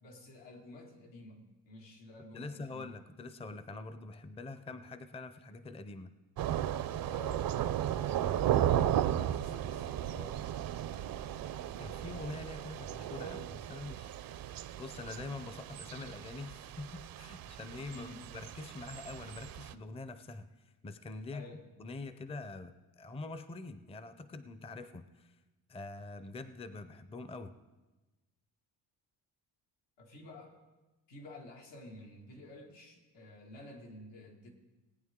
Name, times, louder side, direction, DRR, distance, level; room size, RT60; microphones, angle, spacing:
voice 1, 0.0-3.0 7.1-10.4 17.9-18.3 21.3-21.6 30.0-30.6 31.1-34.5, left 1 dB, 90° left, 0 dB, 2.2 m, -51 dB
voice 2, 2.3-6.1 11.8-14.5 14.8-21.5 21.8-25.4 25.7-27.5, left 3 dB, 15° left, 12 dB, 0.5 m, -45 dB
Thunder / Rain, 6.4-19.7, right 11 dB, 55° right, 0.5 m, -35 dB
19.0 x 8.9 x 3.7 m, 1.1 s
cardioid pair, 105°, 42 cm